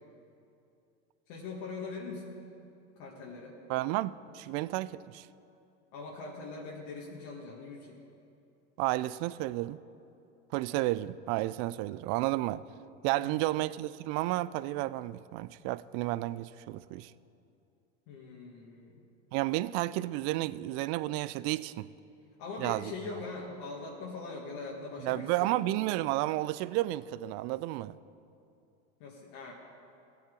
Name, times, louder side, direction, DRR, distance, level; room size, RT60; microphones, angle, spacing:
voice 1, 1.3-2.4 3.0-3.6 5.9-8.0 13.2-13.5 18.1-19.0 22.4-25.5 29.0-29.5, left 3 dB, 60° left, 1.9 m, -42 dB
voice 2, 3.7-5.3 8.8-9.8 10.5-12.6 13.0-17.1 19.3-21.9 22.6-22.9 25.0-27.9, right 17 dB, 50° right, 0.4 m, -32 dB
17.0 x 8.6 x 3.8 m
hypercardioid pair, 95°, 35 cm